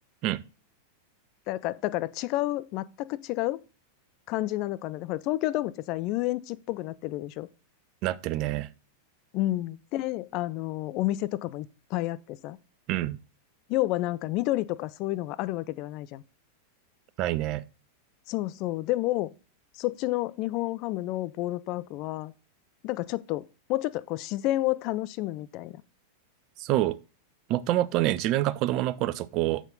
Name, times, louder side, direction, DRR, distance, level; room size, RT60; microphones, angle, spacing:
voice 1, 1.5-3.6 4.3-7.5 9.3-12.6 13.7-16.2 18.3-19.3 19.8-22.3 22.8-25.8, left 16 dB, 40° left, 0.4 m, -30 dB
voice 2, 8.0-8.7 12.9-13.2 17.2-17.6 26.6-27.0 27.5-29.6, right 15 dB, 40° right, 0.5 m, -26 dB
7.1 x 5.9 x 3.9 m
figure-of-eight pair, 90°, 0 cm